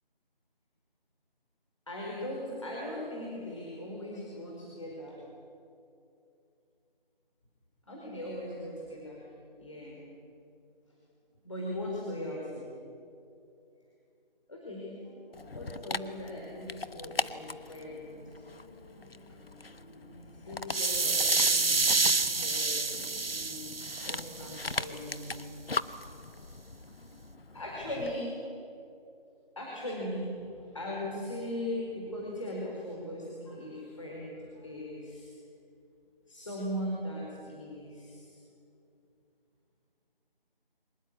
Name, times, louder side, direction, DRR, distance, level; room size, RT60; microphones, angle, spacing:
voice 1, 1.9-5.2 7.9-9.3 9.6-10.0 11.4-12.7 14.5-14.9 15.5-18.4 19.3-19.4 19.9-25.4 26.9-27.2 27.5-28.4 29.6-35.3 36.3-38.4, left 1 dB, 35° left, -3 dB, 4.6 m, -39 dB
sound 1, 14.9-20.1, equal, 5° left, 2.7 m, -57 dB
Dog, 15.3-28.2, left 3 dB, 75° left, 1.3 m, -40 dB
sound 2, 20.7-24.8, right 3 dB, 75° right, 1.1 m, -28 dB
24.5 x 20.5 x 8.5 m, 2.6 s
figure-of-eight pair, 175°, 30 cm